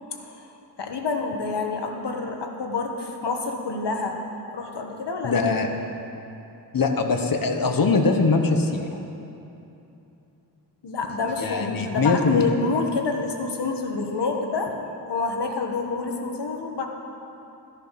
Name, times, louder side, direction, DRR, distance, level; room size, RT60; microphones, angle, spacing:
voice 1, 0.1-0.5 0.8-4.2 4.5-5.4 10.8-14.7 15.1-16.9, left 4 dB, 85° left, 2 dB, 1.5 m, -28 dB
voice 2, 5.2-5.7 6.7-8.9 11.4-12.4, left 4 dB, 55° left, 4 dB, 1.2 m, -22 dB
15.0 x 10.5 x 5.9 m, 2.8 s
wide cardioid pair, 150°, 40 cm